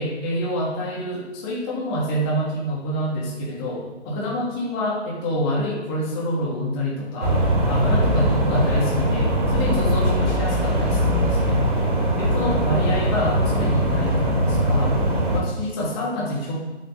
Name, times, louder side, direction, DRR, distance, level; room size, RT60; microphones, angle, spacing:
voice 1, 0.0-11.6 12.2-15.0 15.3-16.6, equal, 20° left, -3 dB, 3.0 m, -27 dB
sound 1, 7.2-15.4, equal, 45° right, 4.3 m, -21 dB
12.0 x 8.5 x 6.9 m, 1.1 s
figure-of-eight pair, 150°, 35 cm